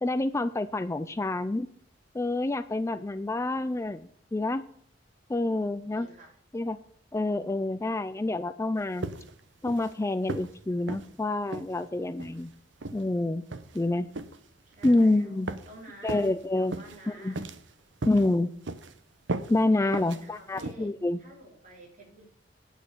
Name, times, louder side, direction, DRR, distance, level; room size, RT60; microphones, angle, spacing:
voice 1, 0.0-1.7 2.1-4.6 5.3-6.1 6.5-6.8 7.1-9.1 9.6-12.5 12.9-13.4 13.7-14.1 14.8-15.5 16.0-16.8 17.1-17.3 18.1-18.5 19.5-21.2, left 2 dB, 15° left, 13 dB, 0.4 m, -27 dB
voice 2, 5.9-6.4 14.6-17.4 19.7-22.3, right 1 dB, 45° right, -1 dB, 3.8 m, -50 dB
sound 1, 9.0-9.4 9.7-9.9 10.3-10.5 10.9-11.1 11.5-11.7 12.2-12.4 12.8-13.0 13.5-13.8 14.1-14.4 14.8-15.1 15.5-15.7 16.1-16.3 16.7-17.0 17.3-17.7 18.0-18.3 18.6-18.9 19.3-19.5 19.9-20.2 20.6-20.7, right 2 dB, 90° right, 0.9 m, -36 dB
9.7 x 6.3 x 6.7 m, 0.63 s
head